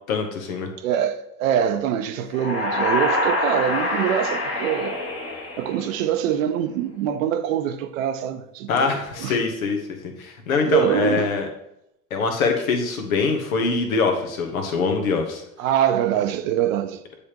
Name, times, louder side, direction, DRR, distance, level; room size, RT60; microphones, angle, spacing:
voice 1, 0.1-0.7 8.7-9.8 10.2-11.5 12.1-15.4, left 4 dB, 70° left, 1.1 m, -23 dB
voice 2, 0.8-5.0 5.6-8.9 9.2-9.4 10.6-11.3 15.6-17.0, right 10 dB, 65° right, 0.7 m, -24 dB
sound 1, 2.3-6.2, left 1 dB, 30° left, 1.6 m, -25 dB
9.5 x 3.4 x 2.9 m
figure-of-eight pair, 70°, 43 cm